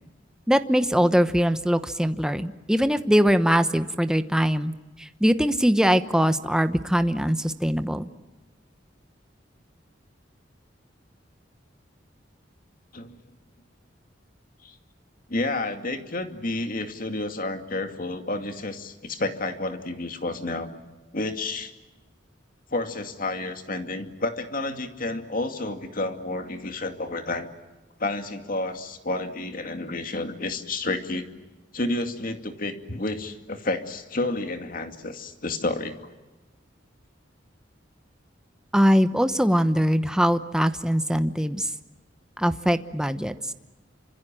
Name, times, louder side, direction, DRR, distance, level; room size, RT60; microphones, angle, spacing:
voice 1, 0.5-4.7 5.0-8.1 38.7-41.7 42.4-43.4, equal, 5° right, 10 dB, 1.0 m, -22 dB
voice 2, 15.3-20.7 21.1-21.7 22.7-27.5 28.0-31.3 31.7-36.1, left 2 dB, 50° left, 7 dB, 2.3 m, -30 dB
28.0 x 26.0 x 7.6 m, 1.1 s
head